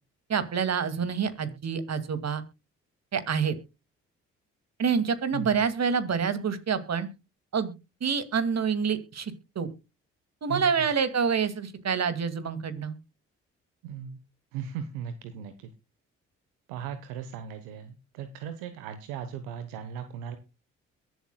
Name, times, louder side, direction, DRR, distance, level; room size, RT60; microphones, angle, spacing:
voice 1, 0.3-2.4 3.1-3.6 4.8-7.1 7.5-7.7 8.0-9.7 10.4-13.0, right 6 dB, 50° right, 12 dB, 2.3 m, -27 dB
voice 2, 13.8-14.2 14.5-15.5 16.7-20.4, right 8 dB, 85° right, 10 dB, 1.1 m, -37 dB
22.5 x 7.8 x 2.3 m, 0.27 s
hypercardioid pair, 45°, 33 cm